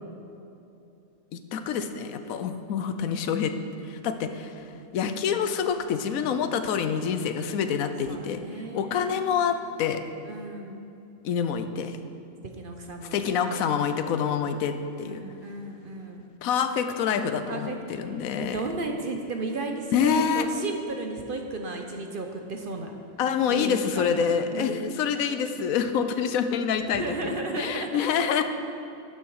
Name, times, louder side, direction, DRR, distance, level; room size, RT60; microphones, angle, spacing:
voice 1, 1.3-3.5 3.9-4.6 4.9-8.4 8.7-10.0 11.2-12.0 13.1-15.2 16.4-18.6 19.9-20.4 23.2-28.4, left 7 dB, 90° left, 9 dB, 1.1 m, -27 dB
voice 2, 8.1-9.1 10.2-10.9 12.6-13.7 15.0-16.3 17.5-17.8 18.4-22.9 23.5-24.8 26.8-27.9 28.2-28.4, right 3 dB, 50° right, 3 dB, 0.8 m, -34 dB
12.0 x 7.1 x 4.8 m, 2.7 s
omnidirectional pair, 1.4 m